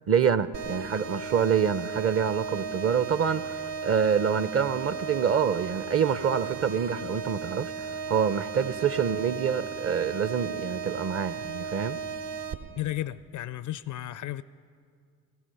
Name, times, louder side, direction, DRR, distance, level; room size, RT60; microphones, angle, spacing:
voice 1, 0.1-12.0, right 7 dB, 30° right, 0.6 m, -26 dB
sound 1, 0.5-12.5, right 5 dB, 60° right, 1.2 m, -36 dB
voice 2, 12.7-14.4, left 13 dB, 45° left, 0.4 m, -33 dB
16.0 x 15.5 x 5.6 m
hypercardioid pair, 50°, 47 cm